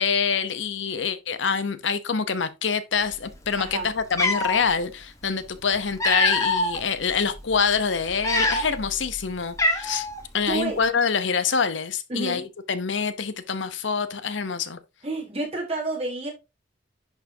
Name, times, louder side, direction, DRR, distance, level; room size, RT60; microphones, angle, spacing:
voice 1, 0.0-10.1 10.3-14.8, left 6 dB, 75° left, 0.8 m, -26 dB
Cat, 3.6-3.7 4.1-4.6 5.6-6.8 7.3-7.5 8.1-8.9 9.1-9.2 9.6-10.2, left 1 dB, 15° left, 1.5 m, -24 dB
voice 2, 3.6-3.9 10.4-10.8 12.1-12.5 15.0-16.3, right 2 dB, 35° right, 3.6 m, -29 dB
10.5 x 4.6 x 2.8 m
head